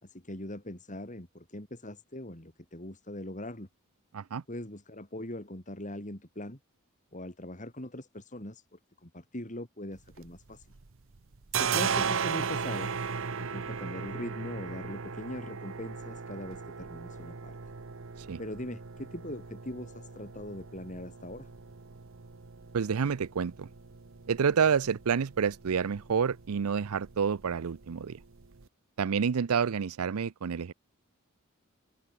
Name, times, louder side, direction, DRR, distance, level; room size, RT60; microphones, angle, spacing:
voice 1, 0.0-3.7 4.5-6.6 7.1-10.7 11.5-12.9 13.4-17.6 18.4-21.5, left 1 dB, 35° left, 4.0 m, -41 dB
sound 1, 9.9-10.9 11.1-28.6, right 6 dB, 65° right, 0.9 m, -37 dB
voice 2, 22.7-23.7 24.3-28.2 29.0-30.7, right 6 dB, 90° right, 0.5 m, -28 dB
open air
head